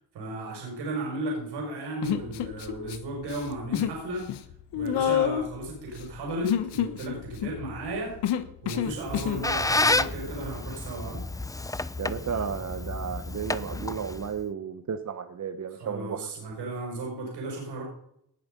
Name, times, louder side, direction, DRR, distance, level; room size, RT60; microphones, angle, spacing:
voice 1, 0.1-4.2 4.7-8.1 8.6-11.2 15.8-17.8, right 2 dB, 80° right, -1 dB, 5.9 m, -34 dB
Human voice, 2.0-3.0 3.2-4.0 4.3-9.5, left 10 dB, 85° left, 1.2 m, -29 dB
Squeak, 8.9-14.4, left 2 dB, 10° left, 0.6 m, -30 dB
voice 2, 12.0-16.3, right 7 dB, 45° right, 8 dB, 1.1 m, -33 dB
19.0 x 6.8 x 5.3 m, 0.73 s
cardioid pair, 80°, 39 cm